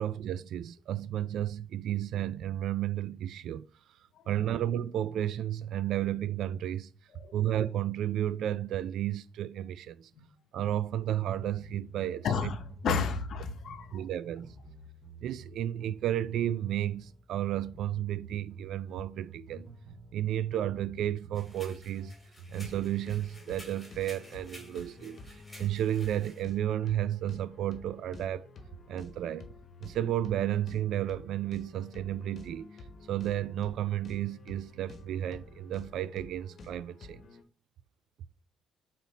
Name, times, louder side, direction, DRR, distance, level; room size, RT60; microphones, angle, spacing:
voice 1, 0.0-3.7 4.3-6.9 7.3-10.1 10.5-12.5 12.9-13.0 13.9-14.5 15.2-19.7 20.1-22.1 22.5-25.2 25.6-28.5 28.9-29.5 29.8-32.7 33.1-37.2, right 11 dB, 65° right, 0.3 m, -32 dB
sound 1, 11.1-23.0, right 2 dB, 45° right, 2.2 m, -50 dB
voice 2, 12.2-14.0, left 6 dB, 50° left, 0.9 m, -32 dB
sound 2, 21.3-26.4, left 1 dB, 10° left, 2.2 m, -53 dB
sound 3, 22.5-37.4, left 2 dB, 35° left, 1.2 m, -50 dB
7.4 x 4.1 x 4.1 m
cardioid pair, 165°, 0 cm